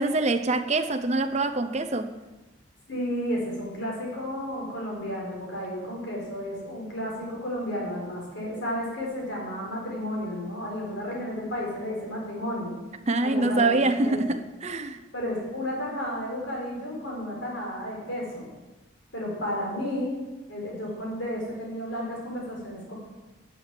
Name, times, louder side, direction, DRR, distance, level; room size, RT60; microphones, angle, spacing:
voice 1, 0.0-2.1 13.1-15.0, right 2 dB, 35° right, 0.7 m, -25 dB
voice 2, 2.9-12.7 13.2-13.8 14.0-14.4 15.1-18.5 19.1-20.2 20.5-22.9, equal, 65° left, 4.6 m, -32 dB
10.5 x 8.3 x 7.6 m
head